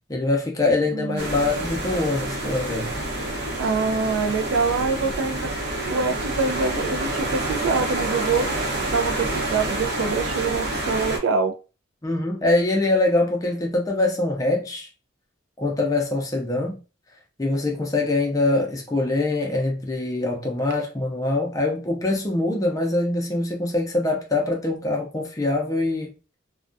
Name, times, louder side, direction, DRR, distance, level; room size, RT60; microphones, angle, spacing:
voice 1, 0.1-3.0 12.0-14.9 15.6-16.8 17.4-26.1, left 2 dB, 15° left, 0.5 m, -23 dB
voice 2, 0.9-1.3 3.6-5.5 5.9-8.5 8.9-11.5, right 4 dB, 80° right, 0.4 m, -25 dB
sound 1, 1.2-11.2, right 1 dB, 60° right, 0.8 m, -28 dB
2.3 x 2.1 x 2.5 m
head